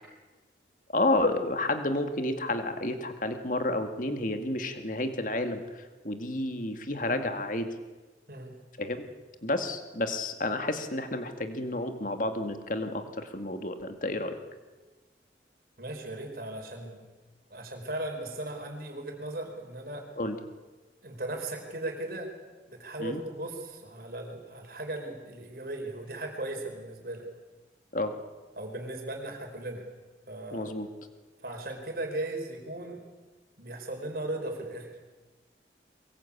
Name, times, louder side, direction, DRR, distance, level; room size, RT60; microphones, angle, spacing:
voice 1, 0.9-7.7 8.8-9.0 9.4-14.4 20.2-20.4 23.0-23.2 27.9-28.1 30.5-30.9, left 2 dB, 45° left, 7 dB, 2.1 m, -30 dB
voice 2, 15.8-17.0 17.5-20.0 21.0-22.3 22.7-27.2 28.6-29.8 30.3-30.7 31.4-33.0 33.6-34.9, right 1 dB, 55° right, 3 dB, 4.8 m, -37 dB
23.5 x 22.0 x 8.6 m, 1.3 s
head